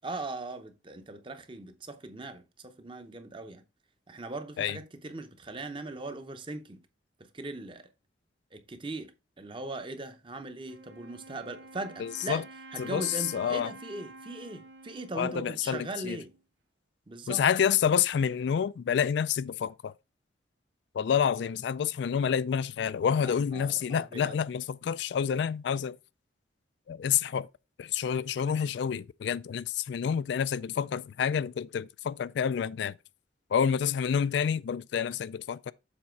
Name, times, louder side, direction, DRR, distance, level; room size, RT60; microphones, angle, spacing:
voice 1, 0.0-3.6 4.1-6.8 7.2-7.9 8.5-12.4 12.7-16.3 17.1-17.4 23.2-24.4, right 2 dB, 25° right, 0.7 m, -40 dB
Wind instrument woodwind instrument, 10.6-16.4, right 2 dB, 65° right, 1.2 m, -49 dB
voice 2, 12.0-12.4 12.8-13.7 15.2-16.2 17.3-19.9 20.9-26.0 26.9-27.5 27.8-33.0 33.5-35.7, left 7 dB, 65° left, 0.3 m, -28 dB
7.3 x 4.2 x 4.5 m
head